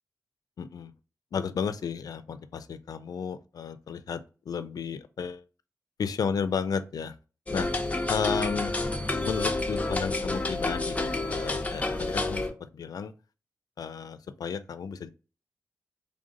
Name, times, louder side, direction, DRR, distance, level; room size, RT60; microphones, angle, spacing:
voice 1, 0.6-0.9 1.3-5.4 6.0-7.1 7.5-7.7 8.1-8.7 9.2-12.5 12.7-13.1 13.8-15.1, left 6 dB, 80° left, 0.4 m, -33 dB
sound 1, 7.5-12.5, left 2 dB, 20° left, 0.5 m, -29 dB
3.4 x 2.6 x 3.7 m
wide cardioid pair, 115°, 6 cm